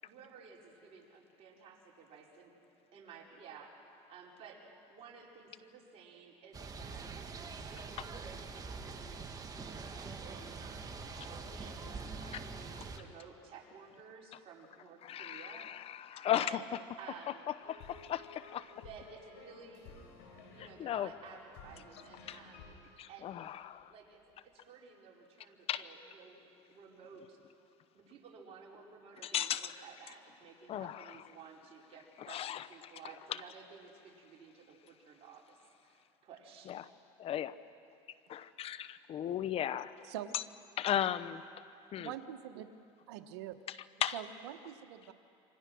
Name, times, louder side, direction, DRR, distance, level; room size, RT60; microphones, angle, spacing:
voice 1, 0.0-2.5 2.9-7.1 7.5-9.2 9.8-11.0 11.5-15.7 16.2-16.7 17.0-17.5 18.7-20.0 20.5-22.7 23.1-23.4 23.9-27.4 27.9-35.6 35.8-36.7, right 6 dB, 50° right, -2 dB, 5.2 m, -54 dB
sound 1, 6.5-13.0, right 4 dB, 25° right, 1.8 m, -44 dB
voice 2, 15.0-16.6 17.7-18.7 20.6-21.1 22.3-22.4 23.0-23.9 25.7-25.8 29.2-29.7 30.7-31.2 32.2-32.9 36.7-36.9 37.2-37.5 38.3-39.9 40.3-40.4 40.8-41.4 41.9-42.1 44.0-44.2, left 11 dB, 45° left, 15 dB, 1.0 m, -36 dB
sound 2, 17.6-23.9, left 4 dB, 80° left, 4.9 m, -55 dB
voice 3, 40.0-40.4 42.0-42.7 43.1-43.6 44.1-45.1, right 11 dB, 90° right, 8 dB, 1.3 m, -44 dB
27.5 x 24.5 x 6.3 m, 2.6 s
supercardioid pair, 105°, 14 cm